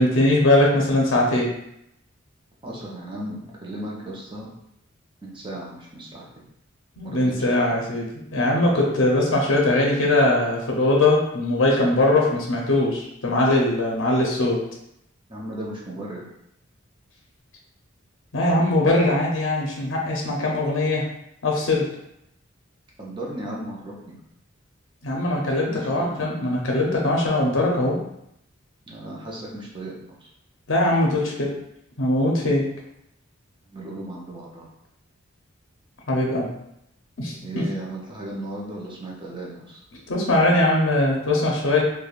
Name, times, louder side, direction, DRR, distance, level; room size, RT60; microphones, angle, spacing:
voice 1, 0.0-1.5 7.0-14.6 18.3-21.1 21.4-21.9 25.0-28.0 30.7-31.5 32.0-32.6 36.1-36.5 37.2-37.6 40.1-41.8, left 1 dB, 70° left, -2 dB, 0.6 m, -21 dB
voice 2, 2.6-4.5 5.2-6.2 7.0-7.7 15.3-16.2 23.0-24.1 25.7-26.4 28.9-30.3 33.7-34.6 37.4-39.8, right 1 dB, 25° right, -4 dB, 0.6 m, -36 dB
3.4 x 2.2 x 2.3 m, 0.79 s
head